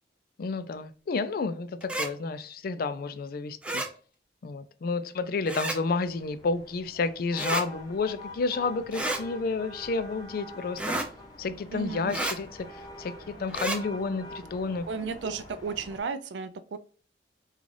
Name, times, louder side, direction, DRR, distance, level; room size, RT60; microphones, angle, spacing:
voice 1, 0.4-3.8 4.4-10.8 11.4-14.9, left 4 dB, 55° left, 12 dB, 0.4 m, -31 dB
sound 1, 1.8-2.1 3.6-3.9 5.5-5.8 7.4-7.7 8.9-9.2 10.8-11.1 12.1-12.4 13.5-13.8, right 2 dB, 5° right, 0.4 m, -30 dB
sound 2, 6.0-16.0, left 1 dB, 25° left, 0.7 m, -46 dB
voice 2, 11.7-12.1 14.9-16.8, right 5 dB, 80° right, 10 dB, 0.4 m, -34 dB
3.8 x 2.4 x 3.2 m, 0.40 s
head